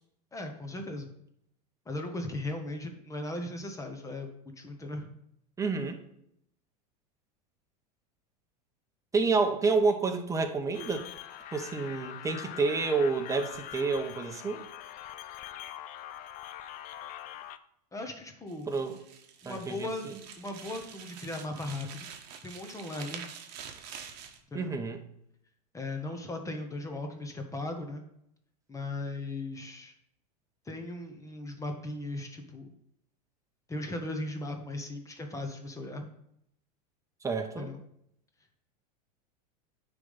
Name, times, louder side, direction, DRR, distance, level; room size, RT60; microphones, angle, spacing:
voice 1, 0.3-1.1 1.9-4.3 4.6-5.1 17.9-18.7 19.4-20.0 20.4-22.1 22.4-23.2 24.5-24.8 25.7-28.0 28.7-29.9 30.7-32.7 33.7-36.1 37.6-37.8, left 2 dB, 15° left, 4 dB, 1.2 m, -37 dB
voice 2, 5.6-6.0 9.1-11.1 11.5-14.6 18.7-18.9 19.5-20.2 24.5-25.0 37.2-37.7, right 4 dB, 15° right, 5 dB, 1.0 m, -29 dB
sound 1, 10.7-17.6, left 11 dB, 40° left, 0.5 m, -43 dB
sound 2, 18.5-24.4, right 7 dB, 50° right, 1.1 m, -46 dB
9.5 x 3.5 x 5.5 m, 0.74 s
hypercardioid pair, 100°, 21 cm